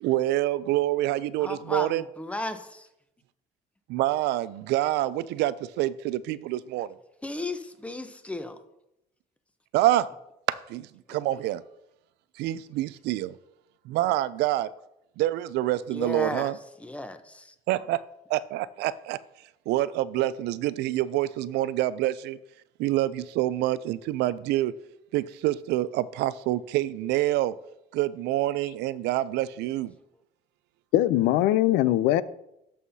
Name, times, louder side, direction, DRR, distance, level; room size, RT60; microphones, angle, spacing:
voice 1, 0.0-2.0 3.9-6.9 9.7-10.0 10.7-11.6 12.4-13.3 13.9-14.7 15.2-16.6 17.7-18.0 18.3-19.2 19.7-22.4 22.8-24.7 25.1-27.5 27.9-29.9, right 15 dB, 85° right, 0.4 m, -26 dB
voice 2, 1.4-2.9 7.2-8.6 15.9-16.5 16.8-17.5, left 2 dB, 5° left, 0.8 m, -34 dB
voice 3, 30.9-32.2, left 14 dB, 90° left, 0.4 m, -21 dB
12.5 x 5.6 x 2.7 m
cardioid pair, 110°, 17 cm